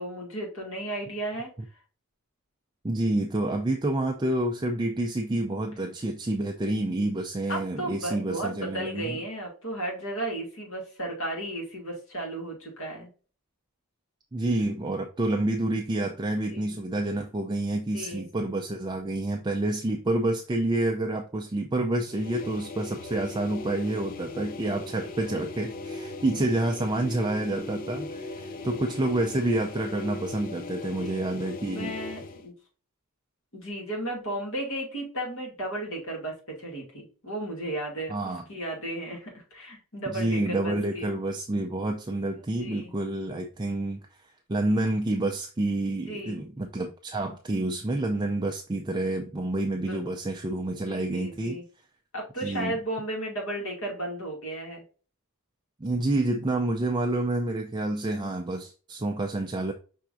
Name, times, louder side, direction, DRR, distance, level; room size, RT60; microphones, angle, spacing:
voice 1, 0.0-1.5 7.5-13.1 16.5-16.8 17.9-18.2 30.8-31.2 31.7-32.5 33.5-38.1 38.5-41.1 42.3-42.9 46.1-46.4 49.8-50.0 50.7-51.6 52.1-54.8, right 1 dB, 65° left, -1 dB, 2.3 m, -34 dB
voice 2, 2.8-9.2 14.3-31.9 38.1-38.4 40.1-44.0 44.5-51.6 52.4-52.8 55.8-59.7, right 1 dB, 20° right, 2 dB, 0.4 m, -28 dB
sound 1, 22.0-32.5, left 2 dB, 40° left, 0.5 m, -38 dB
5.7 x 3.5 x 2.6 m, 0.38 s
head